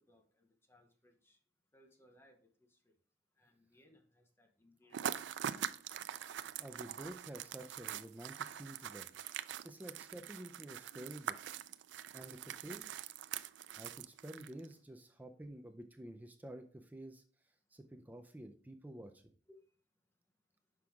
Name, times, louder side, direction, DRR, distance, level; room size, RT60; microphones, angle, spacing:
voice 1, 0.0-1.4 1.7-2.9 3.4-5.5 19.5-19.6, left 1 dB, 15° left, 0.8 m, -67 dB
sound 1, 4.9-14.7, right 10 dB, 75° right, 0.3 m, -43 dB
voice 2, 6.6-9.1 9.6-11.4 12.1-13.1 13.7-17.2 17.7-19.2, right 1 dB, 10° right, 0.4 m, -50 dB
6.0 x 4.8 x 3.5 m
head